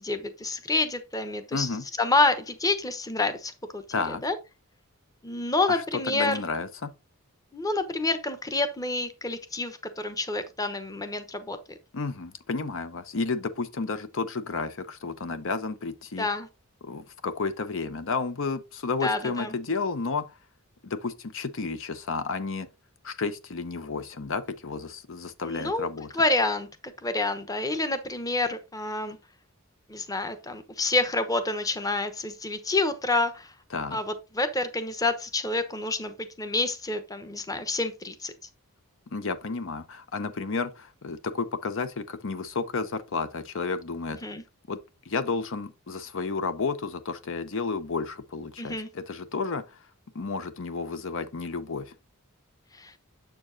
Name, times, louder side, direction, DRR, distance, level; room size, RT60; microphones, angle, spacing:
voice 1, 0.0-1.7 2.0-4.4 5.2-6.4 7.5-11.8 16.2-16.5 19.0-19.6 25.4-25.9 26.1-26.7 27.0-29.2 29.9-33.5 33.9-38.3 44.2-44.4 48.6-48.9 52.7-52.9, left 2 dB, 15° left, 0.9 m, -28 dB
voice 2, 1.5-1.8 3.9-4.2 5.7-6.9 11.9-16.3 16.8-20.3 20.8-22.7 23.0-26.1 33.7-34.0 39.1-44.2 44.7-44.8 45.0-49.8 50.1-51.9, left 4 dB, 60° left, 0.7 m, -31 dB
7.6 x 6.9 x 2.6 m
head